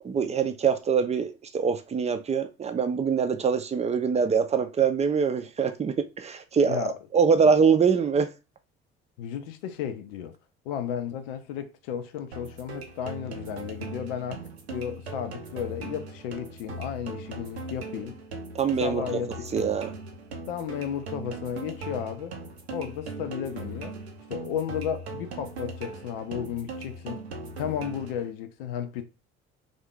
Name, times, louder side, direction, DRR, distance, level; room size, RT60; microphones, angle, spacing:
voice 1, 0.0-6.8 7.1-8.3 18.5-19.0 19.5-19.9, right 6 dB, 20° right, 0.5 m, -24 dB
voice 2, 6.6-6.9 9.2-10.3 10.6-18.2 18.8-19.5 20.5-22.4 22.7-24.0 24.3-27.2 27.6-29.0, left 9 dB, 65° left, 0.6 m, -33 dB
sound 1, 12.3-28.3, right 2 dB, 80° right, 0.7 m, -39 dB
3.5 x 2.5 x 3.6 m
figure-of-eight pair, 50°, 32 cm